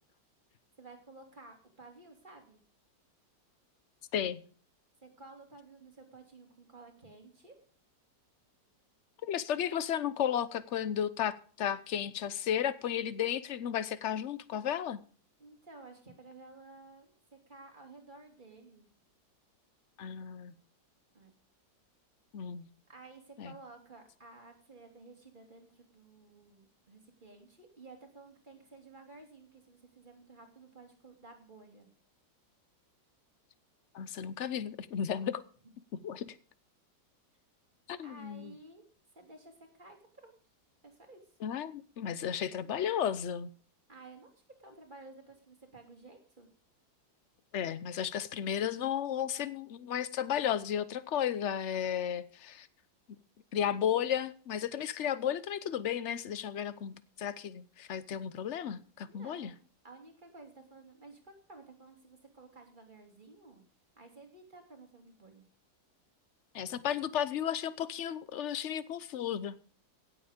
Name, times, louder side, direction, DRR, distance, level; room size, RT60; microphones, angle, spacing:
voice 1, 0.8-2.6 5.0-7.5 15.4-18.9 21.1-21.3 22.9-31.9 35.6-35.7 38.0-38.8 39.1-40.3 40.8-41.2 43.9-44.3 44.6-46.5 59.1-59.6 59.8-63.6 64.0-65.4, right 3 dB, 25° right, 2 dB, 3.0 m, -54 dB
voice 2, 9.2-15.0 20.0-20.5 22.3-22.7 23.4-23.5 33.9-35.4 36.0-36.4 37.9-38.5 41.4-43.5 47.5-52.7 53.5-59.5 66.5-69.6, left 9 dB, 55° left, 16 dB, 0.8 m, -34 dB
16.5 x 8.0 x 5.2 m, 0.43 s
omnidirectional pair, 2.0 m